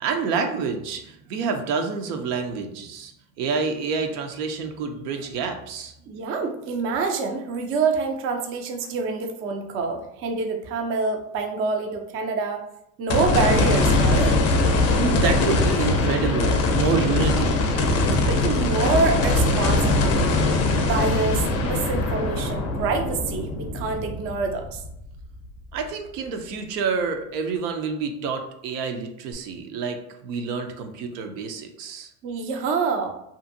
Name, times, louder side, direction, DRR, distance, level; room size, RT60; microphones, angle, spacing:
voice 1, 0.0-3.1 3.4-5.9 14.9-17.6 25.7-32.1, right 5 dB, 80° right, 5 dB, 0.6 m, -28 dB
voice 2, 6.1-12.6 13.0-14.3 18.3-20.4 20.8-24.8 32.2-33.1, right 4 dB, 30° right, 3 dB, 0.4 m, -26 dB
sound 1, 13.1-25.4 25.9-26.0 29.3-29.4, left 2 dB, 35° left, 0.4 m, -22 dB
2.7 x 2.5 x 2.5 m, 0.78 s
supercardioid pair, 100°, 47 cm